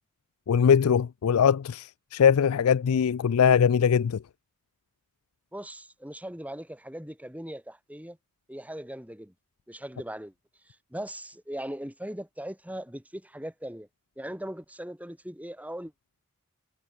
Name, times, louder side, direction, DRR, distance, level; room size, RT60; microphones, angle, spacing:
voice 1, 0.5-4.2, left 7 dB, 90° left, 0.4 m, -21 dB
voice 2, 5.5-8.2 8.5-9.3 9.7-10.3 10.9-13.9 14.2-15.9, right 1 dB, 5° right, 6.7 m, -39 dB
head